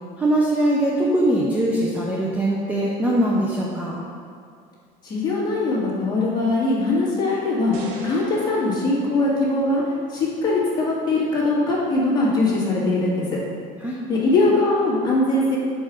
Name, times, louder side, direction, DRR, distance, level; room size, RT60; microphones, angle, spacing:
voice 1, 0.2-4.0 13.8-14.0, right 1 dB, 10° right, -4 dB, 0.5 m, -21 dB
voice 2, 5.0-7.7 8.0-9.8 10.1-13.4 14.1-15.6, left 2 dB, 25° left, -7 dB, 1.7 m, -21 dB
sound 1, 7.7-10.0, right 1 dB, 60° right, 1.1 m, -40 dB
4.8 x 4.6 x 6.1 m, 2.3 s
cardioid pair, 165°, 18 cm